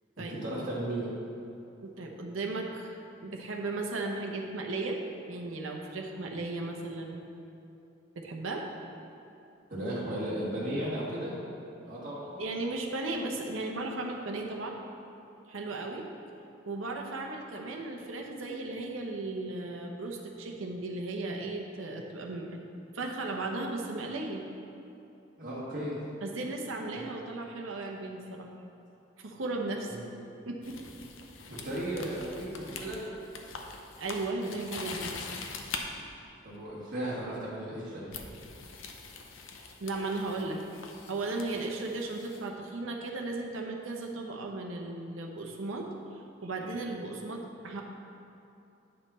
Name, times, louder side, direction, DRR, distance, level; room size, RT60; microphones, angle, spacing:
voice 1, 0.2-1.1 9.7-11.3 11.9-12.3 25.4-26.0 26.9-27.0 29.9-30.0 31.5-33.0 36.4-38.1, right 1 dB, 45° right, -8 dB, 1.8 m, -35 dB
voice 2, 1.8-5.0 5.3-7.2 8.2-8.7 12.4-14.8 15.5-16.1 16.7-22.6 22.9-24.4 26.2-28.5 29.2-30.0 30.5-30.8 34.0-35.2 39.8-40.6 41.1-47.8, right 2 dB, 90° right, 1 dB, 0.8 m, -36 dB
sound 1, 30.6-35.8 37.1-37.3 38.1-42.4, left 4 dB, 85° left, 0.7 m, -43 dB
8.8 x 5.4 x 4.2 m, 2.9 s
head